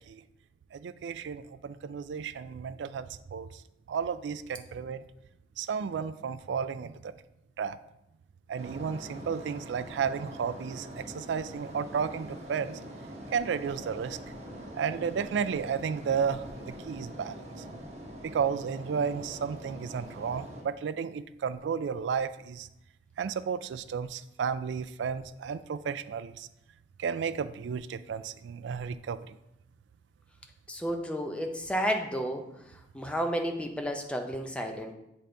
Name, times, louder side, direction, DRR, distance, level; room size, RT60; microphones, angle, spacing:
voice 1, 0.7-3.6 3.9-5.0 5.6-7.1 7.6-7.8 8.5-12.8 13.3-14.2 14.8-17.6 18.2-22.7 23.2-26.5 27.0-29.3, right 6 dB, 90° right, 13 dB, 0.3 m, -33 dB
sound 1, 8.6-20.6, equal, 40° right, 1.0 m, -44 dB
voice 2, 30.7-32.4 32.9-34.9, equal, 5° left, 3 dB, 0.5 m, -31 dB
8.1 x 3.8 x 3.4 m, 0.86 s
head